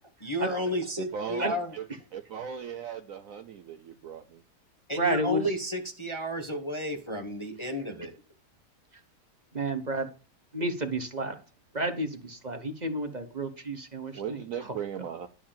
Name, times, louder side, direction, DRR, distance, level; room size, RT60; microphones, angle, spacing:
voice 1, 0.2-1.7 4.9-8.1, equal, 20° left, 0.9 m, -32 dB
voice 2, 1.0-1.9 2.1-4.4 14.1-15.3, right 8 dB, 65° right, 0.9 m, -37 dB
voice 3, 5.0-5.4 9.5-10.0 10.5-11.3 11.7-14.7, right 1 dB, 30° right, 1.0 m, -31 dB
11.5 x 4.6 x 7.5 m
omnidirectional pair, 1.8 m